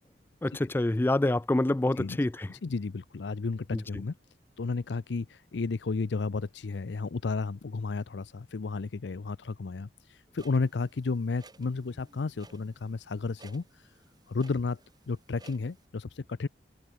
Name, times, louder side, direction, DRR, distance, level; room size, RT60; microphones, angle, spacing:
voice 1, 0.4-2.5 3.7-3.8, left 1 dB, 10° left, 0.3 m, -26 dB
voice 2, 2.5-4.1 4.6-14.0 14.3-14.8 15.1-16.5, left 4 dB, 75° left, 0.5 m, -33 dB
Clock, 10.3-15.9, right 3 dB, 25° right, 4.5 m, -58 dB
head